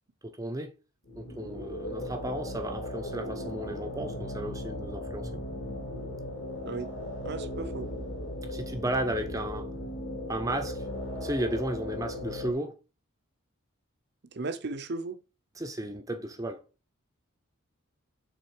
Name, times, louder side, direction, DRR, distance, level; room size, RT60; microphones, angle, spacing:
voice 1, 0.2-0.7 1.1-5.3 8.5-9.7 10.3-10.8 11.2-12.8 15.6-16.6, right 1 dB, 15° right, 0.7 m, -34 dB
sound 1, 1.1-12.5, left 1 dB, 55° left, 2.2 m, -37 dB
voice 2, 7.2-7.9 14.3-15.2, right 3 dB, 50° right, 0.7 m, -35 dB
6.2 x 3.9 x 4.9 m
head